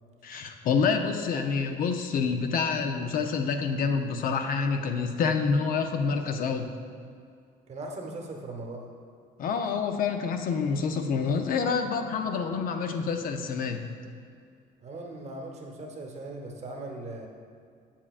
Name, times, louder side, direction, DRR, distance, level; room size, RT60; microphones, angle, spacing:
voice 1, 0.2-6.7 9.4-13.9, left 5 dB, 55° left, 6 dB, 0.5 m, -27 dB
voice 2, 7.7-8.9 14.8-17.3, right 2 dB, 40° right, 1 dB, 1.0 m, -39 dB
7.3 x 7.1 x 2.4 m, 2.3 s
cardioid pair, 110°, 17 cm